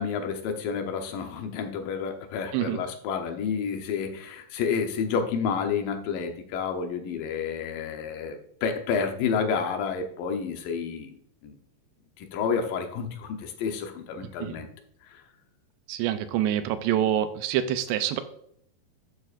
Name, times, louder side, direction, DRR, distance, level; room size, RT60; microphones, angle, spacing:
voice 1, 0.0-11.1 11.4-11.5 12.2-14.7 15.1-15.2, left 6 dB, 70° left, 4 dB, 2.2 m, -30 dB
voice 2, 2.5-2.8 14.4-14.6 15.9-18.2, right 11 dB, 85° right, 10 dB, 2.7 m, -26 dB
13.0 x 7.9 x 2.5 m, 0.68 s
omnidirectional pair, 4.9 m